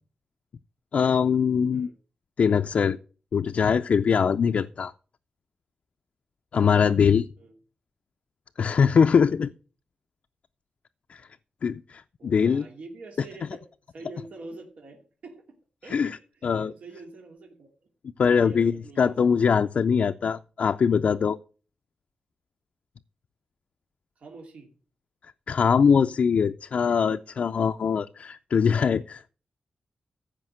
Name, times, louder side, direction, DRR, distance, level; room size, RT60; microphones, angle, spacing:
voice 1, 0.9-1.9 2.4-3.0 3.3-4.9 6.5-7.3 8.6-9.5 11.1-11.2 11.6-12.7 15.9-16.2 16.4-16.7 18.2-21.4 25.5-29.3, left 6 dB, 65° left, 0.4 m, -22 dB
voice 2, 12.2-13.6 13.9-17.7 18.3-19.1 24.2-24.8, right 3 dB, 75° right, 2.6 m, -45 dB
14.5 x 5.2 x 6.3 m
wide cardioid pair, 100°, 2 cm